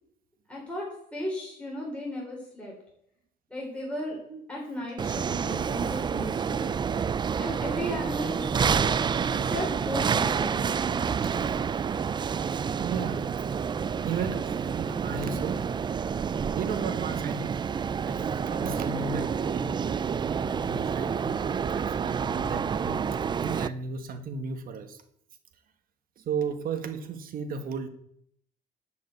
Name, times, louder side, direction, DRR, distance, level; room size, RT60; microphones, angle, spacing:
voice 1, 0.5-0.8 1.1-2.7 3.5-4.2 4.5-6.7 7.4-8.9 9.3-10.7, left 1 dB, 5° left, -4 dB, 3.8 m, -35 dB
sound 1, 5.0-23.7, right 6 dB, 25° right, 0.4 m, -28 dB
voice 2, 11.2-11.6 12.8-13.3 13.7-15.6 16.1-17.6 18.0-19.7 20.4-23.0 23.4-25.0 26.2-27.9, right 5 dB, 60° right, 7 dB, 1.4 m, -35 dB
12.0 x 5.3 x 8.2 m, 0.70 s
cardioid pair, 120°, 17 cm